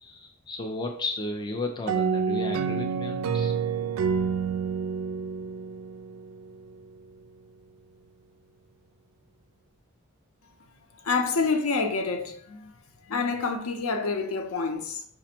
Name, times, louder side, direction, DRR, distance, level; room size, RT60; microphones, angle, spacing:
voice 1, 0.0-3.5, left 2 dB, 20° left, 0.3 m, -34 dB
sound 1, 1.9-6.5, right 6 dB, 70° right, 0.3 m, -28 dB
voice 2, 11.0-12.7 13.1-15.1, left 4 dB, 70° left, 0.6 m, -27 dB
5.0 x 2.1 x 4.2 m
head